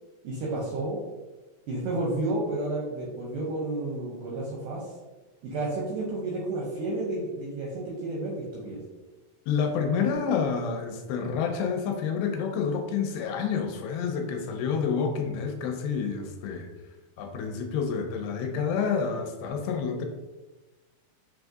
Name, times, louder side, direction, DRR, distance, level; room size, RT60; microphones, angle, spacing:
voice 1, 0.2-1.0 1.7-4.9 5.4-8.8, right 2 dB, 80° right, -3 dB, 1.8 m, -31 dB
voice 2, 9.5-16.7 17.2-20.1, left 6 dB, 90° left, 4 dB, 2.4 m, -28 dB
6.0 x 2.3 x 2.6 m, 1.1 s
omnidirectional pair, 4.3 m